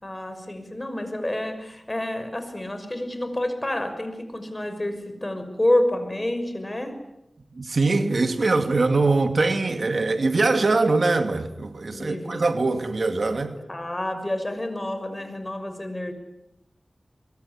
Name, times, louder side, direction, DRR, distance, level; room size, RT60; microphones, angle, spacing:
voice 1, 0.0-7.0 11.9-12.5 13.7-16.1, left 1 dB, 30° left, 6.2 m, -28 dB
voice 2, 7.6-13.5, right 3 dB, 75° right, 2.4 m, -22 dB
23.5 x 23.0 x 9.9 m
cardioid pair, 45°, 0 cm